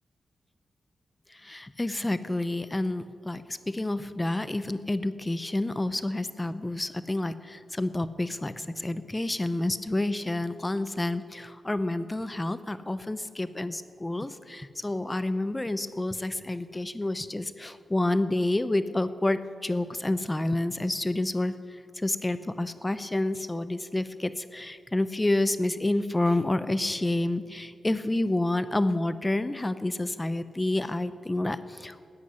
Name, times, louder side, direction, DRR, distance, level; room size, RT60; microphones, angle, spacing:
voice 1, 1.3-32.1, left 2 dB, 15° left, 13 dB, 0.6 m, -29 dB
14.0 x 9.7 x 9.7 m, 2.2 s
wide cardioid pair, 135°, 0 cm